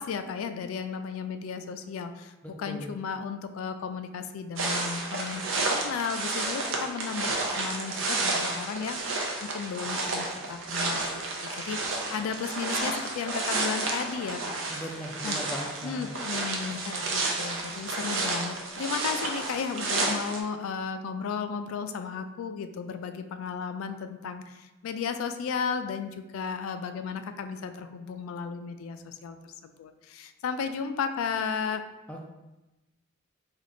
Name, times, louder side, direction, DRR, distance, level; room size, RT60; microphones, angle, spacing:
voice 1, 0.0-14.6 15.2-15.4 15.8-31.8, left 6 dB, 85° left, 10 dB, 0.3 m, -34 dB
voice 2, 2.4-2.9 14.7-16.1 32.1-32.2, equal, 5° left, -1 dB, 0.3 m, -38 dB
sound 1, 4.6-20.4, right 3 dB, 75° right, 0.6 m, -31 dB
3.4 x 2.4 x 3.7 m, 1.0 s
head